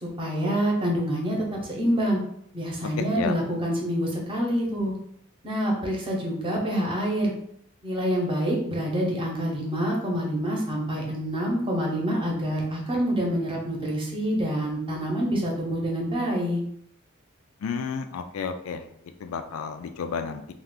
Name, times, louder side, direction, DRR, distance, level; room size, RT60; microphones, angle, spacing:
voice 1, 0.0-2.2 2.5-4.9 5.4-7.3 7.8-16.6, equal, 25° right, -1 dB, 0.7 m, -26 dB
voice 2, 17.6-18.8 19.2-20.4, left 6 dB, 85° left, 7 dB, 0.3 m, -31 dB
2.4 x 2.3 x 3.6 m, 0.70 s
head